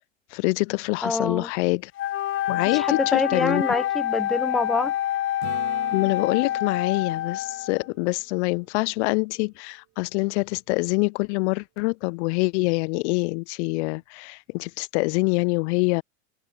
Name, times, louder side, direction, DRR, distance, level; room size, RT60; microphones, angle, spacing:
voice 1, 0.3-1.9 2.5-3.6 5.9-16.0, left 27 dB, 70° left, 0.5 m, -25 dB
voice 2, 1.0-1.5 2.7-4.9, left 2 dB, ahead, 0.4 m, -26 dB
Wind instrument woodwind instrument, 2.0-7.9, left 12 dB, 35° left, 1.4 m, -27 dB
Acoustic guitar / Strum, 5.4-9.2 14.0-14.1, right 20 dB, 55° right, 5.5 m, -45 dB
supercardioid pair, 115°, 36 cm